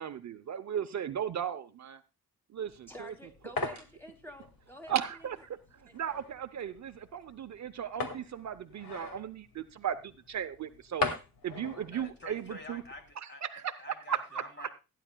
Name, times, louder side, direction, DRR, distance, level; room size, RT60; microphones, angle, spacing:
voice 1, 0.0-2.0 2.5-2.9 4.9-5.4 5.9-11.1 11.4-12.8 13.4-13.7 14.1-14.7, right 9 dB, 50° right, 11 dB, 0.7 m, -36 dB
sound 1, 2.7-13.1, left 4 dB, 75° left, 2.0 m, -41 dB
voice 2, 2.9-5.3 5.8-6.0, left 1 dB, 5° left, 4 dB, 2.8 m, -48 dB
voice 3, 11.9-14.7, left 1 dB, 30° left, 4 dB, 2.9 m, -47 dB
17.0 x 10.0 x 2.2 m, 0.28 s
cardioid pair, 100°, 35 cm